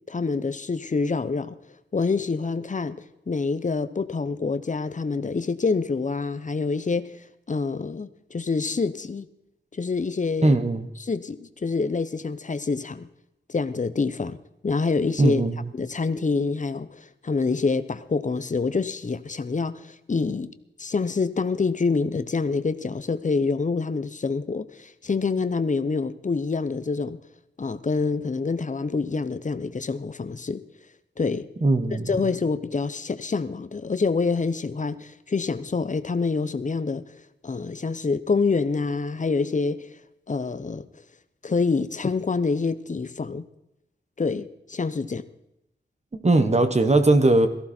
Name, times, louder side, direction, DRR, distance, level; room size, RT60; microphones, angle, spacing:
voice 1, 0.1-1.6 1.9-7.1 7.5-9.3 9.7-10.6 11.0-13.1 13.5-14.4 14.6-15.4 15.7-20.5 20.8-27.2 27.6-30.6 31.2-31.5 32.1-37.0 37.4-39.9 40.3-40.8 41.4-43.4 44.2-45.2, left 4 dB, 40° left, 0.8 m, -26 dB
voice 2, 10.4-10.9 15.2-15.7 31.6-32.1 46.2-47.5, right 2 dB, 35° right, 1.3 m, -19 dB
17.5 x 14.5 x 4.4 m
wide cardioid pair, 115°, 20 cm